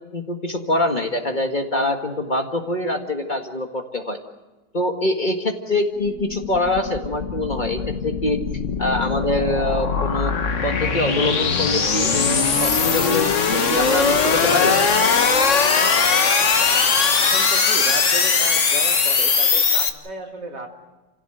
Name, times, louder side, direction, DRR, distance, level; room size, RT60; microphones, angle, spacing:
voice 1, 0.0-4.2 4.7-8.4 8.8-10.3 10.6-14.8, left 1 dB, 30° left, 3 dB, 1.9 m, -24 dB
sound 1, 6.0-19.9, left 5 dB, 50° left, 1.6 m, -20 dB
voice 2, 17.2-20.7, right 3 dB, 80° right, 1 dB, 3.4 m, -34 dB
29.0 x 16.0 x 7.9 m, 1.1 s
omnidirectional pair, 1.8 m